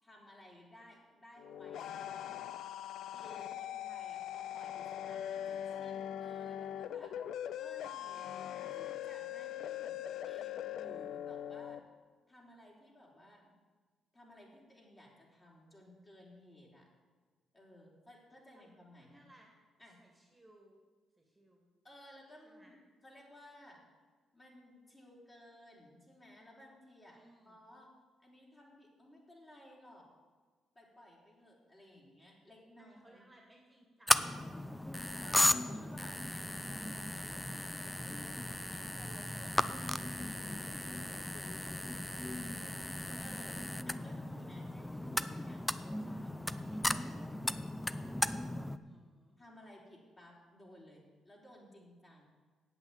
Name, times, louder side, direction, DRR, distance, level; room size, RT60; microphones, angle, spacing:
voice 1, 0.0-2.5 3.1-7.1 7.6-11.8 12.3-13.5 14.1-16.9 17.5-19.3 19.8-20.0 21.8-22.8 23.0-23.8 24.3-27.2 27.5-27.9 28.2-30.1 30.8-33.2 35.2-36.8 37.1-38.2 38.6-41.7 43.2-47.4 47.9-48.4 49.4-52.2, left 1 dB, 25° left, -2 dB, 3.7 m, -58 dB
sound 1, 1.4-11.8, left 10 dB, 75° left, 0.4 m, -41 dB
voice 2, 19.0-19.5 20.0-20.8 21.2-21.7 22.5-22.7 27.1-27.6 32.8-34.5 48.7-49.4, right 1 dB, 10° right, 0 dB, 2.1 m, -64 dB
sound 2, 34.1-48.8, left 1 dB, 5° left, 0.5 m, -36 dB
8.9 x 8.2 x 8.8 m, 1.5 s
cardioid pair, 90°, 0 cm